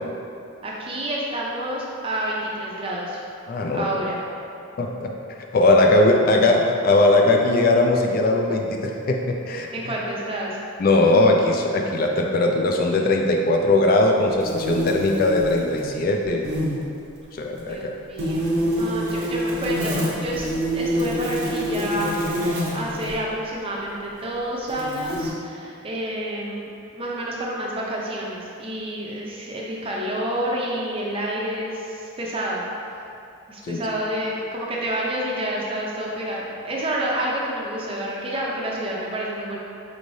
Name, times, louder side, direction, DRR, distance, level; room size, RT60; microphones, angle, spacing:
voice 1, 0.6-3.2 3.7-4.2 9.7-10.6 17.7-20.5 20.7-22.3 22.7-32.7 33.5-39.6, right 1 dB, 25° right, -3 dB, 0.5 m, -29 dB
voice 2, 3.5-3.9 4.8-5.1 5.5-9.7 10.8-16.5 17.3-17.9 33.6-33.8, left 2 dB, 45° left, 2 dB, 0.3 m, -19 dB
sound 1, 14.4-15.9 16.2-16.8 18.2-23.2 24.0-24.1 24.7-25.3, equal, 90° right, 0.9 m, -26 dB
5.1 x 3.2 x 2.6 m, 2.6 s
head